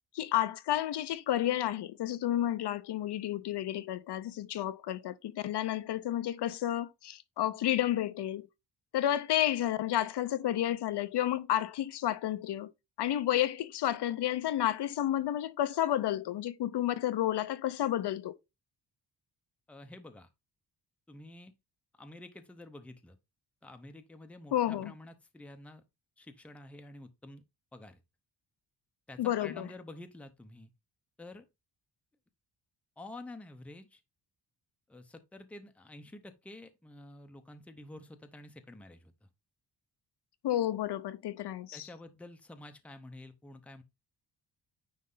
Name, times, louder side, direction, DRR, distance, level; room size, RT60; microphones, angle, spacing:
voice 1, 0.1-8.5 8.9-12.7 13.0-18.4 24.5-24.9 29.2-29.7 40.4-41.9, left 12 dB, 65° left, 0.6 m, -31 dB
voice 2, 19.7-20.3 21.1-21.5 21.9-23.2 23.6-25.8 26.2-27.4 27.7-28.0 29.1-30.7 31.2-31.5 33.0-34.0 34.9-39.3 41.7-43.8, left 1 dB, 5° left, 0.6 m, -49 dB
9.4 x 3.2 x 3.8 m
wide cardioid pair, 175°, 43 cm